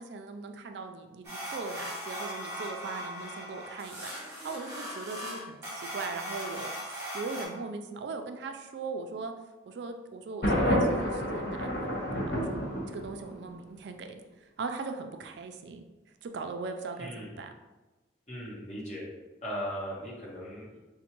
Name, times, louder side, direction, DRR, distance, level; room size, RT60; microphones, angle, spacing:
voice 1, 0.0-9.3 9.7-15.8 16.2-17.5, right 4 dB, 65° right, 6 dB, 0.3 m, -40 dB
sound 1, 1.2-7.4, equal, 15° right, 1.1 m, -39 dB
Thunder, 10.4-13.4, equal, 55° left, 1.3 m, -29 dB
voice 2, 17.0-17.3 18.3-19.0 19.4-20.8, equal, 35° left, -4 dB, 1.0 m, -38 dB
5.1 x 2.1 x 2.9 m, 1.1 s
head